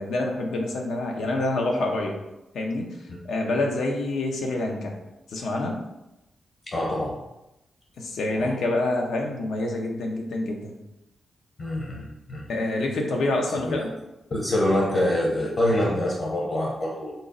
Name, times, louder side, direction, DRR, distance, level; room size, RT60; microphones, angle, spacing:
voice 1, 0.0-2.1 2.5-2.9 3.3-4.9 5.3-5.8 8.0-10.7 12.5-13.9, left 2 dB, 85° left, 1 dB, 0.6 m, -27 dB
voice 2, 6.7-7.1 8.4-8.5 11.6-12.5 13.6-13.8 14.3-17.1, left 1 dB, 45° left, -3 dB, 0.8 m, -25 dB
3.9 x 2.0 x 3.8 m, 0.93 s
cardioid pair, 100°, 0 cm